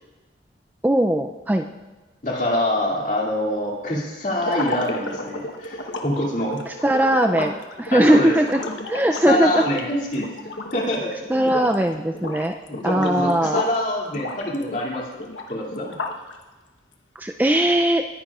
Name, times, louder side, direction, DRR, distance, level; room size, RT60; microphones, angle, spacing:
voice 1, 0.8-1.7 6.8-7.5 7.8-8.6 8.9-9.7 11.3-12.5 12.8-13.6 17.2-18.1, right 1 dB, 10° right, 5 dB, 0.3 m, -19 dB
voice 2, 2.2-6.6 7.4-7.5 7.9-8.3 9.1-10.3 10.7-11.5 12.7-15.2 15.5-16.0, left 1 dB, 45° left, -2 dB, 2.5 m, -25 dB
sound 1, 4.4-11.0 11.3-11.8 12.1-13.8 14.1-16.3, left 2 dB, 85° left, 1.1 m, -32 dB
19.5 x 10.0 x 2.4 m, 1.3 s
head